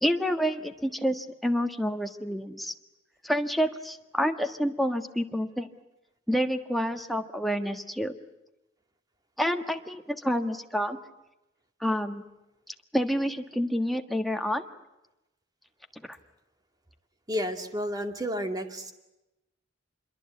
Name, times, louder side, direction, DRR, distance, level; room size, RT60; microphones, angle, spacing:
voice 1, 0.0-2.7 3.2-5.7 6.3-8.1 9.4-11.0 11.8-12.2 12.7-14.6 16.0-16.2, equal, ahead, 5 dB, 1.4 m, -28 dB
voice 2, 17.3-18.9, equal, 20° right, 5 dB, 2.3 m, -31 dB
26.5 x 22.5 x 8.5 m, 0.95 s
head